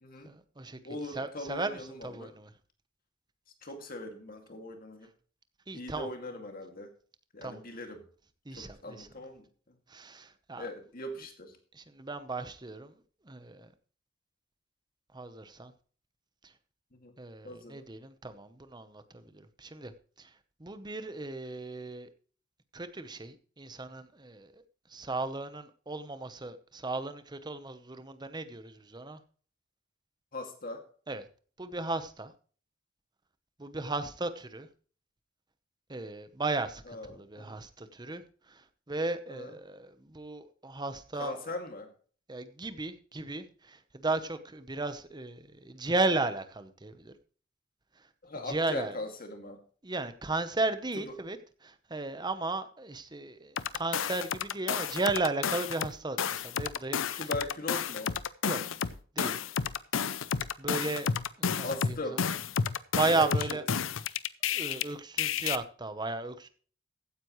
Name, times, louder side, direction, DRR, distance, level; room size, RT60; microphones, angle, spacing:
voice 1, 0.2-0.8 1.1-2.5 5.7-6.1 7.4-7.6 8.5-9.1 9.9-10.7 11.8-12.9 13.3-13.7 15.1-15.7 17.2-19.2 19.6-19.9 20.6-22.1 22.7-24.5 24.9-29.2 31.1-31.2 31.6-32.3 33.6-34.7 35.9-36.8 37.1-38.2 38.9-41.5 42.3-47.1 48.5-48.9 49.8-51.4 51.6-57.3 58.4-58.6 59.2-59.4 60.6-61.1 61.5-61.9 62.2-62.3 62.9-63.6 64.5-66.5, right 3 dB, 20° right, 0.9 m, -35 dB
voice 2, 0.8-2.3 3.6-5.1 5.7-6.9 7.3-8.0 8.6-9.5 10.6-11.5 16.9-17.1 17.4-17.8 30.3-30.8 36.9-37.5 39.3-39.5 41.1-41.9 48.2-49.6 51.0-51.1 57.1-58.1 61.6-62.2 63.1-63.6, left 1 dB, 45° left, 2.3 m, -40 dB
sound 1, 53.6-55.9 56.2-64.8 65.2-65.6, left 7 dB, 80° left, 0.6 m, -31 dB
15.5 x 9.5 x 3.1 m
head